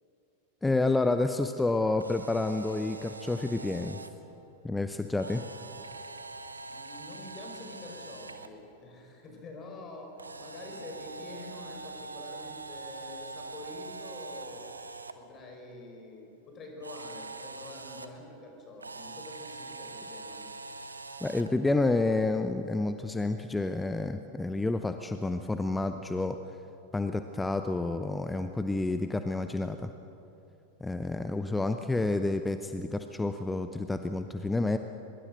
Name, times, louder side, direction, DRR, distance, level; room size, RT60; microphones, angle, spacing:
voice 1, 0.6-4.0 4.6-5.4 21.2-26.4 26.9-29.9 30.8-34.8, left 2 dB, 10° left, 8 dB, 0.8 m, -29 dB
Camera, 1.9-4.1 5.2-8.5 10.2-15.1 16.8-18.1 18.8-21.5, right 3 dB, 80° right, 1.1 m, -43 dB
voice 2, 6.7-14.7 15.1-20.5, left 2 dB, 25° left, 2 dB, 5.5 m, -46 dB
23.5 x 21.5 x 6.6 m, 2.9 s
figure-of-eight pair, 90°, 0 cm